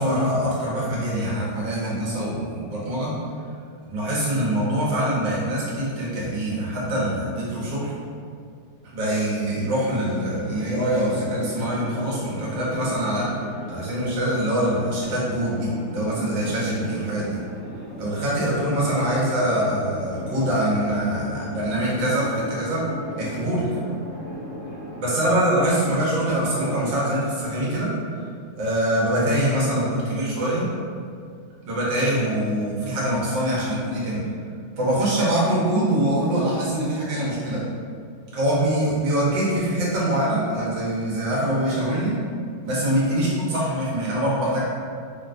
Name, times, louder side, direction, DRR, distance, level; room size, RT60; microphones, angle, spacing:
voice 1, 0.0-3.1 3.8-7.9 8.9-13.2 13.7-17.4 18.0-22.8 23.2-23.6 25.0-27.9 28.6-30.6 31.6-34.2 34.8-37.6 38.3-42.1 42.6-44.6, right 1 dB, 80° right, -7 dB, 1.5 m, -24 dB
sound 1, 9.7-27.0, left 1 dB, 55° left, 1.6 m, -37 dB
4.0 x 2.1 x 2.5 m, 2.3 s
omnidirectional pair, 2.0 m